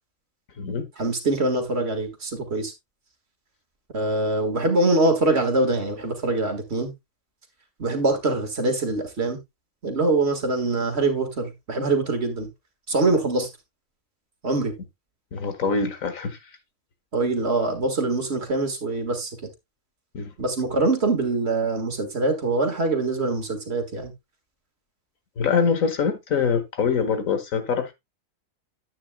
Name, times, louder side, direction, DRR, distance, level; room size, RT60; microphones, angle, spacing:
voice 1, 1.0-2.7 3.9-6.9 7.8-9.4 9.8-12.5 12.9-13.5 14.4-14.7 17.1-19.3 20.4-24.1, right 2 dB, 50° right, 1.9 m, -24 dB
voice 2, 15.3-16.4 20.1-20.3 25.4-27.9, left 6 dB, 80° left, 1.8 m, -24 dB
10.0 x 8.6 x 2.2 m
omnidirectional pair, 1.4 m